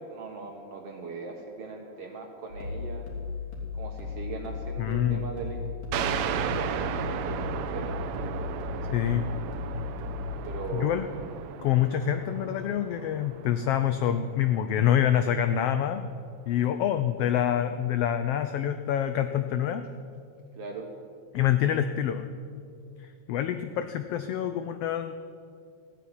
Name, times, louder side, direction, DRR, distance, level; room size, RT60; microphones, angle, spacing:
voice 1, 0.0-3.1 3.7-5.6 5.9-8.1 10.4-11.0 11.7-11.9 20.5-20.9, right 4 dB, 60° right, 2 dB, 2.1 m, -39 dB
sound 1, 2.5-10.7, left 6 dB, 40° left, 3.6 m, -36 dB
voice 2, 4.8-5.2 8.9-9.3 10.7-11.1 11.6-16.1 16.4-19.9 21.3-22.3 23.0-25.2, left 10 dB, 80° left, 9 dB, 1.4 m, -26 dB
sound 2, 5.9-15.1, right 9 dB, 80° right, 1.9 m, -35 dB
15.5 x 9.3 x 10.0 m, 2.3 s
omnidirectional pair, 3.4 m